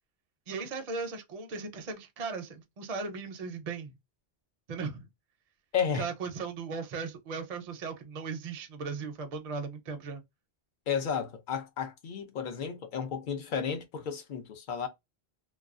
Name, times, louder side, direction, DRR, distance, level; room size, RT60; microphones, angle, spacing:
voice 1, 0.5-3.9 4.7-5.1 5.9-10.2, right 4 dB, 50° right, 0.5 m, -37 dB
voice 2, 5.7-6.1 10.9-14.9, left 7 dB, 55° left, 0.7 m, -33 dB
2.3 x 2.2 x 2.4 m
omnidirectional pair, 1.0 m